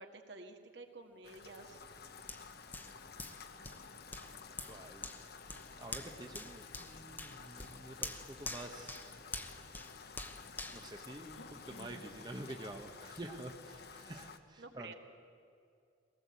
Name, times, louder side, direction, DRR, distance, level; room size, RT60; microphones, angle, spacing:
voice 1, 0.0-1.8 14.6-14.9, right 3 dB, 55° right, 4 dB, 2.0 m, -51 dB
Rain, 1.2-14.4, left 5 dB, 50° left, 1.0 m, -53 dB
Hands, 2.3-11.8 12.3-12.4, left 2 dB, 10° left, 1.0 m, -47 dB
voice 2, 4.6-5.1 5.8-9.2 10.7-14.9, right 1 dB, 20° right, 3 dB, 1.0 m, -48 dB
sound 1, 5.8-12.5, left 2 dB, 70° left, 1.8 m, -60 dB
22.0 x 18.5 x 8.2 m, 2.5 s
head